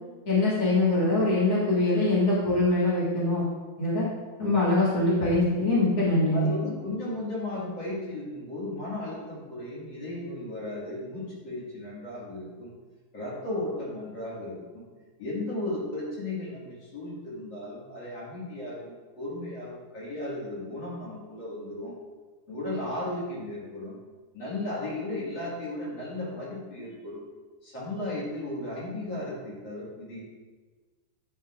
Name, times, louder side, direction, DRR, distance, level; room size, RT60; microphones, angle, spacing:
voice 1, 0.2-3.5 3.8-4.1 4.4-6.5, left 2 dB, 85° left, -8 dB, 0.8 m, -23 dB
voice 2, 6.3-12.7 13.1-14.8 15.2-21.9 22.5-24.0 24.3-27.2 27.6-30.2, left 1 dB, 40° left, -8 dB, 1.9 m, -35 dB
9.7 x 5.4 x 2.5 m, 1.3 s
omnidirectional pair, 4.8 m